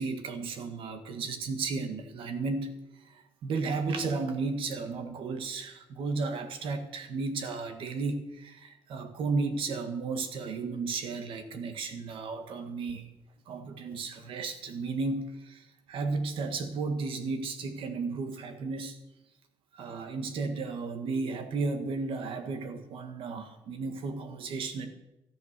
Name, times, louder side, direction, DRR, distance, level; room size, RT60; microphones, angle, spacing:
voice 1, 0.0-13.1 13.5-19.0 19.7-24.9, right 4 dB, 60° right, 7 dB, 1.8 m, -34 dB
13.0 x 11.0 x 6.8 m, 0.95 s
cardioid pair, 165°, 10 cm